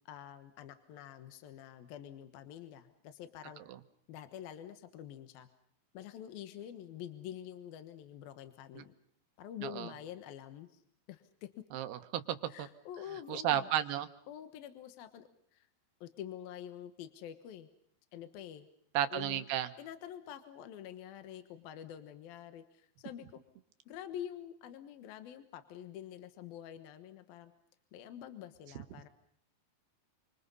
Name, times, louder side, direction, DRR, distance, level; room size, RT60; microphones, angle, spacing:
voice 1, 0.0-3.6 4.1-5.5 5.9-8.9 9.4-10.8 11.1-11.5 12.5-13.7 14.3-15.7 16.0-17.7 18.1-18.7 19.1-19.5 19.8-23.4 23.9-27.5 27.9-29.1, left 10 dB, 70° left, 10 dB, 3.0 m, -47 dB
voice 2, 11.7-12.7 13.3-14.1 18.9-19.7, right 11 dB, 80° right, 9 dB, 3.2 m, -33 dB
28.5 x 25.5 x 5.5 m, 0.64 s
omnidirectional pair, 4.6 m